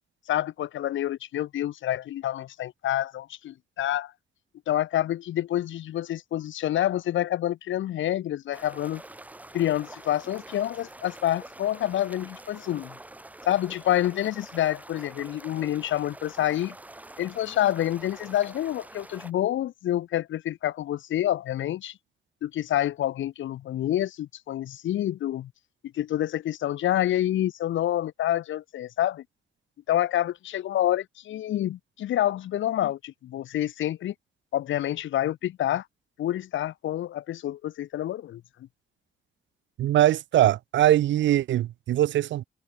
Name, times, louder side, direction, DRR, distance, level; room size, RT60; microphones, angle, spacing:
voice 1, 0.3-4.1 4.7-9.0 9.5-13.0 13.5-16.7 17.2-22.0 22.4-25.5 25.9-29.2 29.9-34.1 34.5-35.8 36.2-38.4, left 12 dB, 80° left, 1.0 m, -27 dB
sound 1, 8.5-19.3, right 2 dB, 10° right, 0.9 m, -46 dB
voice 2, 39.8-42.4, right 13 dB, 70° right, 0.6 m, -22 dB
wide cardioid pair, 160°, 20 cm